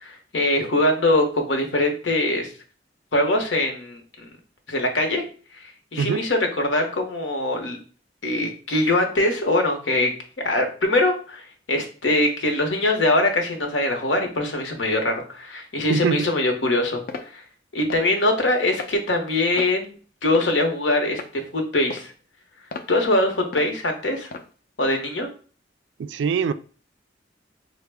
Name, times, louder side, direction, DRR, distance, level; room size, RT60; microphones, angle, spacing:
voice 1, 0.0-2.5 3.1-4.0 4.7-5.3 5.6-7.8 8.2-10.1 10.4-17.0 17.3-17.4 17.7-19.9 20.2-22.1 22.9-24.3 24.8-25.3, left 1 dB, 85° left, 0.9 m, -22 dB
sound 1, 17.1-17.3 17.9-18.1 18.7-18.9 19.6-19.8 20.3-20.7 21.1-21.3 21.9-22.1 22.7-22.9 23.5-23.7 24.3-24.5, left 4 dB, 50° left, 0.4 m, -35 dB
voice 2, 26.0-26.5, right 6 dB, 80° right, 0.3 m, -23 dB
4.5 x 2.1 x 3.3 m
head